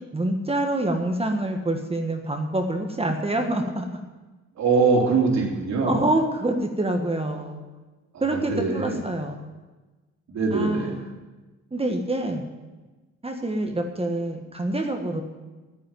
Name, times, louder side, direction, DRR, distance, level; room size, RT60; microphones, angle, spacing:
voice 1, 0.1-4.0 5.8-7.7 8.2-9.4 10.5-11.1 11.7-12.4 13.2-15.2, right 1 dB, 20° right, 3 dB, 1.5 m, -26 dB
voice 2, 4.6-6.1 8.1-9.0 10.3-10.9, right 4 dB, 65° right, -2 dB, 3.6 m, -23 dB
10.5 x 8.5 x 9.3 m, 1.2 s
cardioid pair, 90°, 30 cm